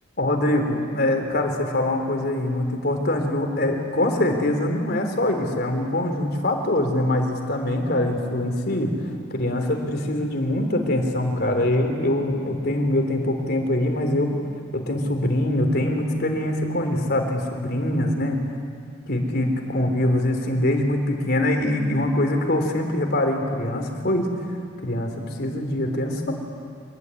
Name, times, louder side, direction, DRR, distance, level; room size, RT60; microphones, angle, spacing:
voice 1, 0.2-8.9 9.3-14.4 14.7-18.4 19.1-24.3 24.8-26.3, left 1 dB, 50° left, 4 dB, 3.6 m, -23 dB
25.5 x 21.0 x 9.8 m, 2.3 s
head